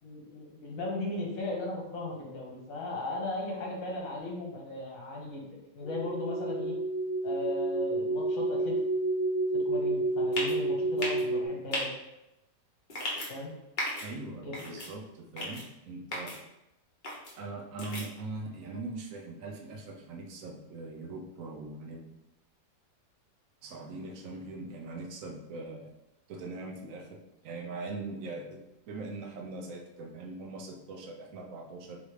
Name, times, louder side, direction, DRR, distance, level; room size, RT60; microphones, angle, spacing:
voice 1, 0.0-5.4 5.7-6.7 7.2-8.8 9.5-11.9 13.3-13.5 14.4-14.5, left 2 dB, 55° left, -2 dB, 1.4 m, -37 dB
sound 1, 5.8-11.5, right 2 dB, 80° left, 1.2 m, -30 dB
sound 2, 10.3-10.5 11.0-11.2 11.7-11.8 12.9-13.3 13.8-14.1 14.5-14.9 15.4-15.6 16.1-16.4 17.0-17.3 17.8-18.0, left 1 dB, 35° left, 0.9 m, -34 dB
voice 2, 14.0-16.4 17.4-22.1 23.6-25.9 26.3-32.0, right 3 dB, 65° right, 2 dB, 0.9 m, -41 dB
3.9 x 3.2 x 3.2 m, 0.90 s
omnidirectional pair, 1.9 m